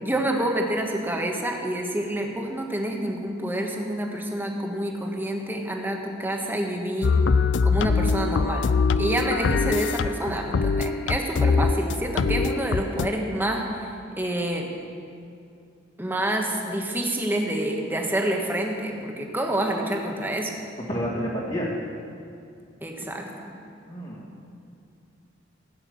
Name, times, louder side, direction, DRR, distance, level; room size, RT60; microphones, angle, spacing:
voice 1, 0.0-7.1 7.6-13.9 14.2-14.7 16.0-20.5 22.8-23.5, right 1 dB, 10° right, 1 dB, 1.3 m, -28 dB
sound 1, 7.0-13.1, left 4 dB, 65° left, 0.4 m, -23 dB
voice 2, 20.9-21.7 23.8-24.2, equal, 40° left, -9 dB, 2.2 m, -29 dB
15.5 x 9.0 x 6.3 m, 2.5 s
head